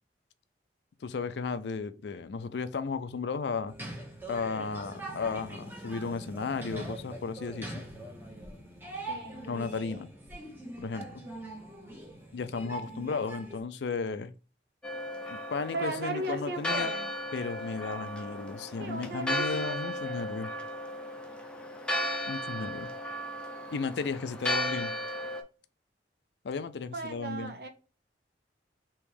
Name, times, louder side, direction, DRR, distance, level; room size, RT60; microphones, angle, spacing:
voice 1, 1.0-3.7 4.3-7.8 9.5-10.1 10.8-11.2 12.3-14.3 15.3-16.9 17.3-20.5 22.3-22.9 23.7-24.9 26.4-27.5, left 4 dB, 75° left, 0.4 m, -34 dB
sound 1, 3.7-13.6, right 1 dB, 10° right, 1.1 m, -42 dB
voice 2, 9.1-9.5 15.7-17.1 18.8-20.4 26.9-27.7, right 2 dB, 60° right, 0.9 m, -37 dB
Church bell, 14.8-25.4, left 1 dB, 5° left, 0.5 m, -35 dB
3.4 x 3.0 x 4.7 m
head